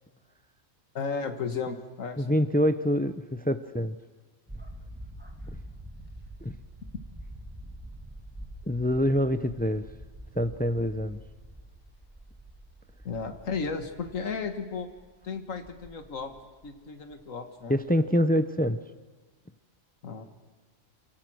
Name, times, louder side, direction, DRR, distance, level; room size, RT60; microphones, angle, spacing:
voice 1, 1.0-2.4 13.1-14.9 15.2-16.3 16.6-17.7 20.0-20.3, left 5 dB, 85° left, 8 dB, 1.9 m, -34 dB
voice 2, 2.2-4.0 6.4-6.6 8.7-9.9 10.4-11.2 17.7-18.8, equal, 15° left, 12 dB, 0.4 m, -25 dB
sound 1, 4.5-17.4 17.7-18.0, right 1 dB, 10° right, 1.9 m, -46 dB
27.5 x 17.5 x 6.3 m, 1.4 s
omnidirectional pair, 1.3 m